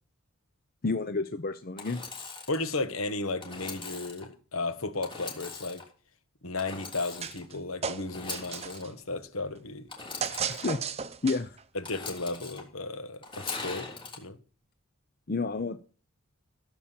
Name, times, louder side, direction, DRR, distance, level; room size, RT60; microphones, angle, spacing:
voice 1, 0.8-2.0 10.5-10.8 11.2-11.6 15.3-15.8, left 3 dB, 40° left, 0.6 m, -30 dB
Engine / Sawing, 1.8-2.6 3.4-4.2 5.0-5.8 6.6-7.4 8.1-8.8 9.9-10.7 11.8-12.6 13.2-14.2, left 4 dB, 25° left, 3.1 m, -41 dB
voice 2, 2.5-5.8 6.4-9.9 11.7-13.9 14.2-14.4, left 3 dB, 70° left, 1.5 m, -34 dB
sound 1, 7.2-7.6 7.8-8.9 10.2-11.6, right 6 dB, 30° right, 0.7 m, -34 dB
15.5 x 7.3 x 7.4 m
head